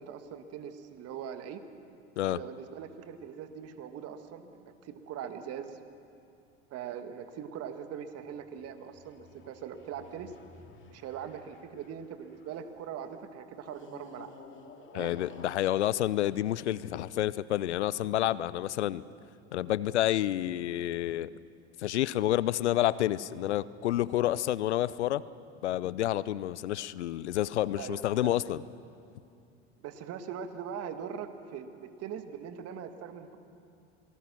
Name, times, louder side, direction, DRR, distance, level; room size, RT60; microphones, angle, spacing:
voice 1, 0.0-1.6 2.2-5.8 6.7-10.3 10.9-14.3 14.9-15.2 27.8-28.4 29.8-33.4, right 8 dB, 45° right, 8 dB, 1.8 m, -41 dB
sound 1, 8.1-12.8 13.6-17.2, left 5 dB, 35° left, 2.3 m, -54 dB
voice 2, 14.9-19.0 19.5-21.3 21.8-25.2 25.6-28.6, left 13 dB, 80° left, 19 dB, 0.6 m, -29 dB
26.5 x 19.0 x 6.1 m, 2.5 s
hypercardioid pair, 80°, 34 cm